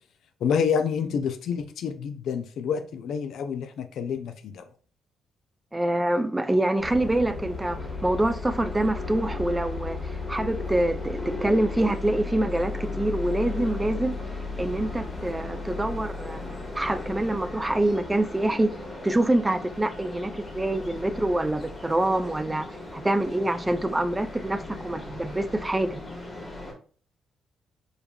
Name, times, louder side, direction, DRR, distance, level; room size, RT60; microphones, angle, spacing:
voice 1, 0.4-4.6, left 6 dB, 70° left, 0.4 m, -28 dB
voice 2, 5.7-14.2 14.6-16.4 16.7-18.7 19.0-26.0, right 1 dB, 15° right, 0.3 m, -26 dB
sound 1, 6.8-26.7, left 3 dB, 15° left, 1.3 m, -35 dB
5.1 x 2.3 x 2.3 m
cardioid pair, 90°, 0 cm